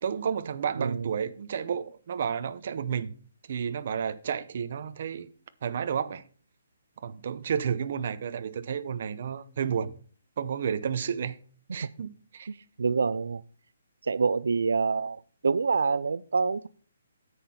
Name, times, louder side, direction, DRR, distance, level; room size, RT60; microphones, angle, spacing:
voice 1, 0.0-3.1 3.5-5.3 5.6-6.2 7.0-9.9 10.4-11.4 11.7-12.5, right 7 dB, 40° right, 0.7 m, -31 dB
voice 2, 12.8-13.4 14.1-16.7, right 4 dB, 80° right, 0.5 m, -26 dB
9.6 x 8.3 x 4.3 m
hypercardioid pair, 175°, 0 cm